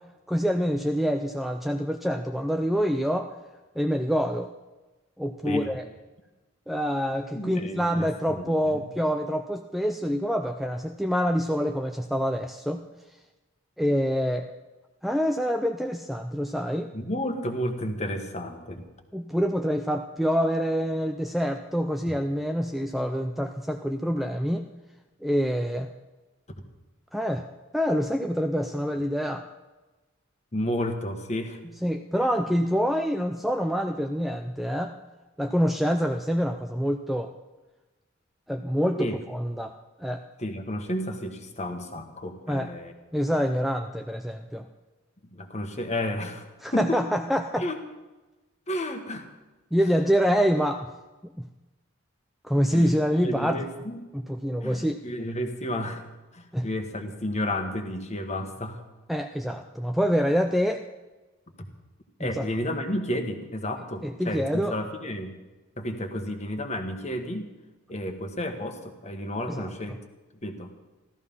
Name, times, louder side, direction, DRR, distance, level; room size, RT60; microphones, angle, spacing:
voice 1, 0.3-3.3 3.8-4.5 5.2-5.9 6.7-12.8 13.8-14.5 15.0-16.9 19.1-24.7 25.2-25.9 27.1-27.4 27.7-29.4 31.8-35.0 35.4-37.3 38.5-40.2 42.5-42.7 43.1-44.7 46.6-47.7 49.7-50.9 51.4-51.5 52.4-53.7 54.1-55.0 56.5-56.7 59.1-60.8 62.2-62.5 64.0-64.8 69.5-69.7, equal, ahead, 5 dB, 0.4 m, -26 dB
voice 2, 7.3-8.9 16.9-18.8 30.5-31.6 39.0-39.2 40.4-42.9 45.3-46.4 46.7-47.0 47.6-47.8 48.7-49.3 52.7-53.0 53.2-54.1 54.6-56.0 56.3-58.8 62.2-65.3 65.8-67.5 67.9-70.0 70.4-70.7, left 1 dB, 35° left, 5 dB, 1.5 m, -31 dB
14.5 x 13.5 x 5.6 m, 1.2 s
head